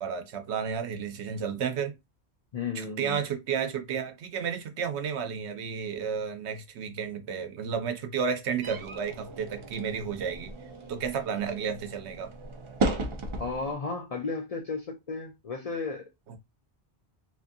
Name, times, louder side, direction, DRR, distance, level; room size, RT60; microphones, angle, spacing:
voice 1, 0.0-2.0 2.7-10.5 10.9-12.3 16.3-16.4, right 7 dB, 80° right, 0.9 m, -32 dB
voice 2, 2.5-3.2 13.4-16.1, left 4 dB, 50° left, 0.4 m, -34 dB
sound 1, 8.6-13.8, right 2 dB, 55° right, 0.3 m, -35 dB
2.8 x 2.5 x 2.5 m
omnidirectional pair, 1.1 m